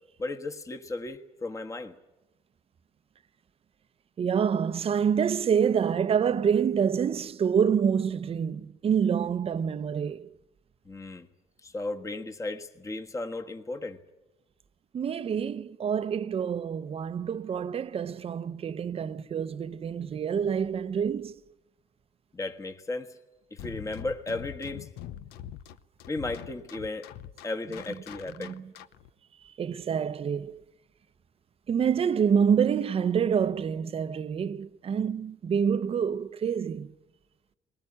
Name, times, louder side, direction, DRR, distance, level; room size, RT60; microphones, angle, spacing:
voice 1, 0.2-2.0 10.8-11.3 11.6-14.0 22.3-23.2 23.5-24.9 26.1-27.1 27.4-28.6, left 2 dB, 20° left, 1.4 m, -35 dB
voice 2, 4.2-10.3 14.9-21.4 28.4-28.6 29.4-30.6 31.7-36.9, right 7 dB, 40° right, 0.7 m, -27 dB
sound 1, 23.6-29.1, left 11 dB, 90° left, 0.8 m, -43 dB
21.0 x 18.5 x 9.8 m
cardioid pair, 115°, 16 cm